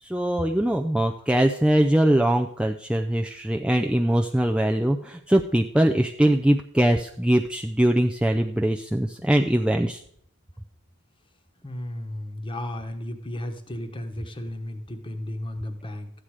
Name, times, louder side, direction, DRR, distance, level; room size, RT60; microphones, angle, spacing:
voice 1, 0.0-10.0, right 1 dB, 5° right, 3 dB, 0.4 m, -22 dB
voice 2, 11.6-16.1, left 1 dB, 25° left, 7 dB, 1.1 m, -34 dB
13.5 x 8.9 x 4.8 m, 0.67 s
head